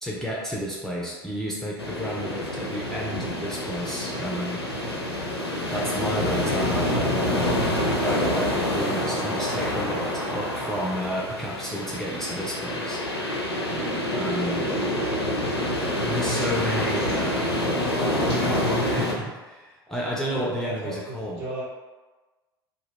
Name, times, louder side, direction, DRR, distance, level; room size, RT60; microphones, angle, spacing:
voice 1, 0.0-4.6 5.7-7.6 8.0-13.0 14.1-14.7 16.0-17.4 18.3-21.4, equal, 5° left, -5 dB, 0.4 m, -31 dB
sound 1, 1.8-19.1, left 1 dB, 90° left, 0.4 m, -27 dB
sound 2, 14.6-15.4 16.3-17.3 18.2-19.1, equal, 80° right, 1.0 m, -40 dB
voice 2, 20.3-21.6, right 2 dB, 55° right, -8 dB, 1.3 m, -35 dB
2.2 x 2.0 x 3.4 m, 1.2 s
figure-of-eight pair, 75°, 13 cm